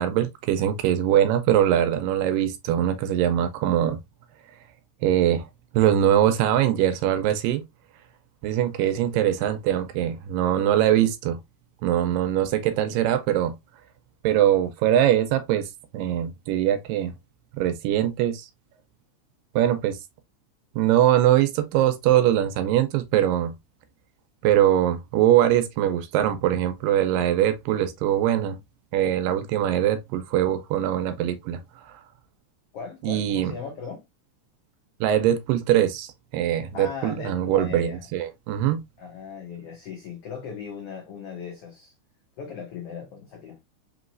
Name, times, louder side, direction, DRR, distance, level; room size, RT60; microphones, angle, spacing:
voice 1, 0.0-4.0 5.0-5.5 5.7-7.6 8.4-11.4 11.8-13.5 14.2-15.7 15.9-17.1 17.6-18.5 19.6-20.0 20.8-23.5 24.4-28.6 28.9-31.6 31.9-32.0 33.0-33.5 35.0-38.8, right 11 dB, 85° right, 2.3 m, -22 dB
voice 2, 8.8-9.1 12.9-13.0 32.7-34.0 36.7-38.1 39.0-41.9 42.4-43.6, left 6 dB, 80° left, 1.3 m, -38 dB
5.1 x 3.0 x 2.5 m
omnidirectional pair, 3.9 m